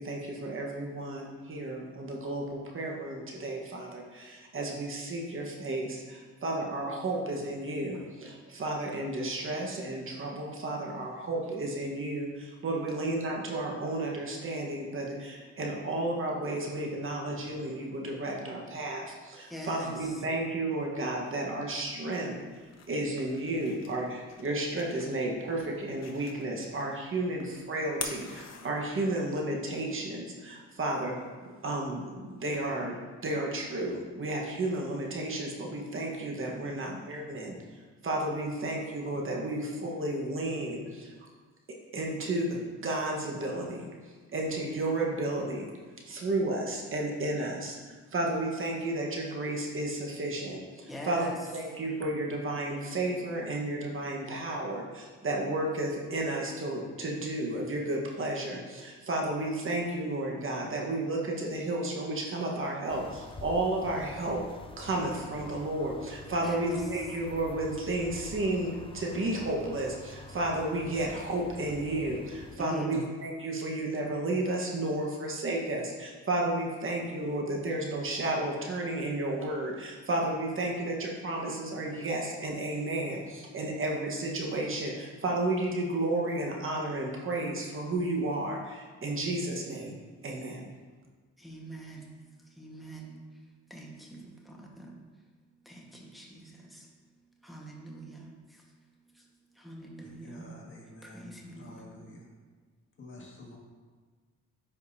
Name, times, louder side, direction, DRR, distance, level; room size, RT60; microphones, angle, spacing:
voice 1, 0.0-22.3 22.9-31.2 31.4-33.0 33.2-37.6 38.0-41.1 41.9-45.7 46.1-64.4 64.8-89.9 90.2-90.6, right 2 dB, 45° right, -1 dB, 1.3 m, -32 dB
voice 2, 19.5-20.1 50.9-51.3 66.4-66.8 72.6-73.1 81.4-81.5 91.4-95.0 95.6-96.9 97.4-98.6 99.1-99.3 99.5-100.5 101.0-101.9, equal, ahead, -2 dB, 1.4 m, -43 dB
sound 1, 22.3-29.3, left 6 dB, 60° left, 1.0 m, -46 dB
sound 2, 62.9-72.6, left 2 dB, 20° left, 0.5 m, -47 dB
voice 3, 100.0-102.3 103.0-103.6, left 1 dB, 40° left, -2 dB, 1.9 m, -49 dB
9.8 x 5.2 x 2.8 m, 1.4 s
cardioid pair, 90°, 30 cm